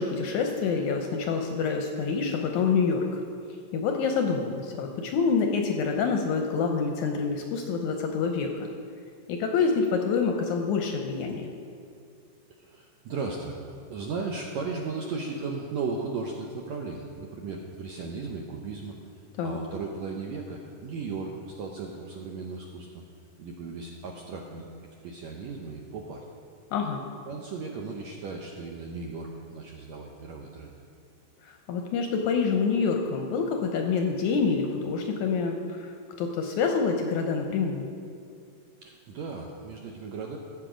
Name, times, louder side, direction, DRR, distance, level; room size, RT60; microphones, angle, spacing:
voice 1, 0.0-3.2 3.7-8.5 9.3-11.5 19.4-19.6 26.7-27.0 31.4-35.9 36.2-37.9, left 5 dB, 75° left, 3 dB, 1.8 m, -27 dB
voice 2, 12.6-19.1 19.4-23.0 23.4-24.7 25.0-26.2 27.3-30.7 38.8-40.4, right 4 dB, 75° right, 0 dB, 1.6 m, -36 dB
14.5 x 7.5 x 5.0 m, 2.4 s
omnidirectional pair, 4.0 m